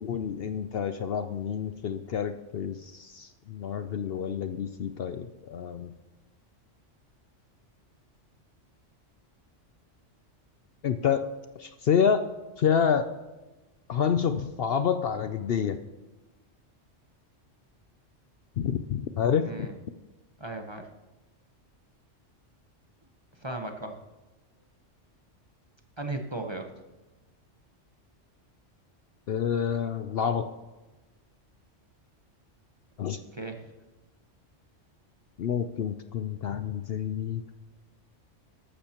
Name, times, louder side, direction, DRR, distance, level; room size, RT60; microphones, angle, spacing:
voice 1, 0.0-5.9 10.8-11.3 11.6-12.2 12.6-13.1 13.9-15.8 18.6-19.7 29.3-30.5 33.0-33.2 35.4-37.4, left 7 dB, 60° left, 10 dB, 0.7 m, -28 dB
voice 2, 19.4-19.8 20.4-20.9 23.3-24.0 26.0-26.7 33.3-33.7, right 2 dB, 25° right, 4 dB, 0.9 m, -36 dB
13.5 x 12.5 x 2.9 m, 1.1 s
omnidirectional pair, 1.3 m